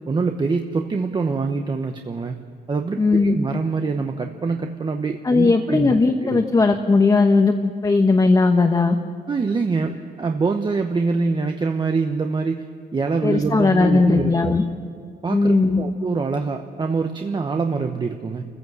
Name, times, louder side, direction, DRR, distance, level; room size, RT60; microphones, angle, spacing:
voice 1, 0.1-2.4 2.7-5.9 6.2-6.4 9.3-12.6 12.9-14.5 15.2-18.5, right 4 dB, 25° right, 5 dB, 1.0 m, -24 dB
voice 2, 3.0-3.4 5.2-9.0 13.2-14.6 15.3-15.9, left 3 dB, 20° left, 4 dB, 1.1 m, -18 dB
28.0 x 15.0 x 7.9 m, 2.2 s
cardioid pair, 120°, 17 cm